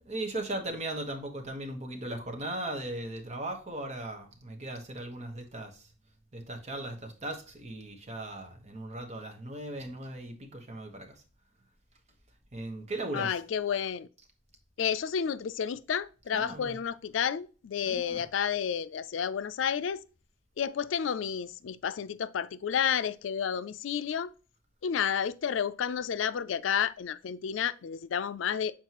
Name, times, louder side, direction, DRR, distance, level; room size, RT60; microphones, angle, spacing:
voice 1, 0.0-5.9 6.3-11.2 12.5-13.4 16.3-16.8 17.8-18.3, right 1 dB, 35° right, 1.2 m, -38 dB
voice 2, 13.1-14.1 14.8-20.0 20.6-24.3 24.8-28.7, left 8 dB, 75° left, 0.4 m, -31 dB
7.5 x 4.4 x 2.9 m
head